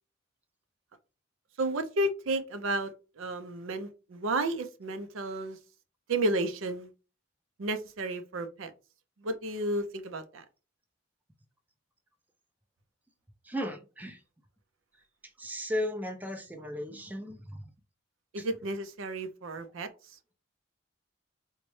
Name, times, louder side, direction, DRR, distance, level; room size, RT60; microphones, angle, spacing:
voice 1, 1.6-5.6 6.1-6.9 7.6-8.7 9.2-10.4 18.3-19.9, right 1 dB, 80° right, 0.5 m, -32 dB
voice 2, 13.4-14.2 15.4-17.7 18.4-18.5, left 1 dB, 10° right, 0.4 m, -36 dB
3.9 x 2.2 x 3.1 m
head